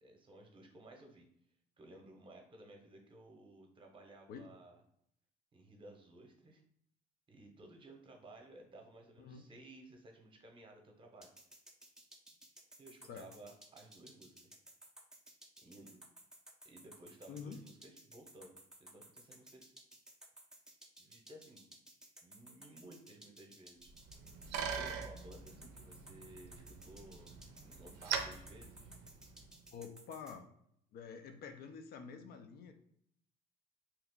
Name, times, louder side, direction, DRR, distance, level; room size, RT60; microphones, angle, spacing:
voice 1, 0.0-1.3 1.8-4.8 5.5-6.6 7.3-11.3 12.8-14.6 15.6-16.0 16.6-18.5 18.8-19.6 20.8-21.7 22.2-23.9 24.7-27.3 27.6-28.9, right 1 dB, 30° right, 2 dB, 0.7 m, -57 dB
sound 1, 11.2-30.4, right 1 dB, 5° right, 0.5 m, -57 dB
Bicycle, 23.9-29.6, right 7 dB, 90° right, 0.5 m, -43 dB
voice 2, 29.7-30.5 30.9-32.7, left 6 dB, 65° left, 6 dB, 0.4 m, -48 dB
2.9 x 2.3 x 3.6 m, 0.71 s
cardioid pair, 110°, 17 cm